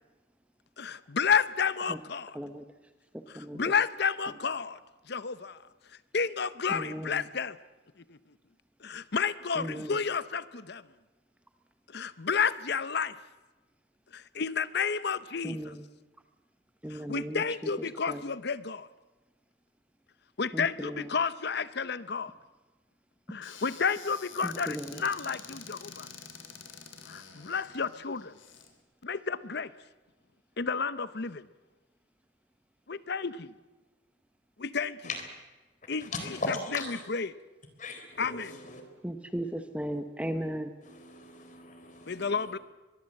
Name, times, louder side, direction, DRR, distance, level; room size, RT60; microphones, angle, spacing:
voice 1, 0.8-2.4 3.3-4.8 5.1-5.6 6.1-7.6 8.1-8.2 8.8-10.8 11.9-13.2 14.1-15.7 16.9-18.9 20.4-22.3 23.3-26.1 27.1-28.4 29.0-29.7 30.6-31.5 32.9-33.5 34.6-35.0 35.9-36.1 36.5-36.8 37.1-37.3 38.2-38.5 42.1-42.6, left 5 dB, 55° left, 16 dB, 0.8 m, -31 dB
voice 2, 6.7-7.2 9.6-9.9 15.4-15.8 16.8-17.4 18.1-18.2 20.5-21.0 24.4-24.9 39.0-40.7, right 1 dB, 5° right, 8 dB, 1.0 m, -36 dB
Squeak / Cupboard open or close, 23.4-28.7, left 6 dB, 80° left, 3.4 m, -48 dB
voice 3, 36.0-37.0 37.8-38.8 40.8-42.6, left 2 dB, 40° left, 6 dB, 3.9 m, -39 dB
23.0 x 22.0 x 7.8 m, 1.2 s
head